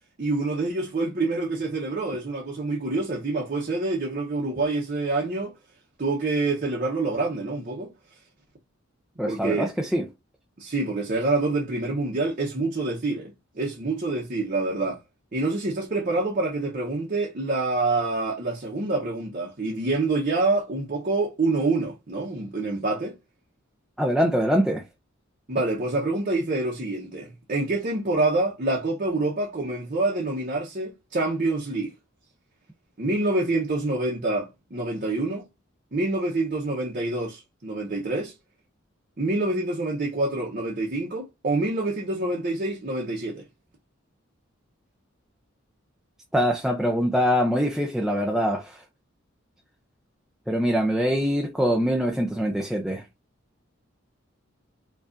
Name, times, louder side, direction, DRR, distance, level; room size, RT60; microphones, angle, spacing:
voice 1, 0.2-5.5 6.0-7.9 9.2-9.7 10.6-15.0 15.3-23.2 25.5-31.9 33.0-35.4 35.9-38.3 39.2-43.4, right 2 dB, 45° right, 0.8 m, -26 dB
voice 2, 9.2-10.1 24.0-24.8 46.3-48.8 50.5-53.0, equal, ahead, 0.4 m, -23 dB
4.9 x 2.4 x 2.5 m
head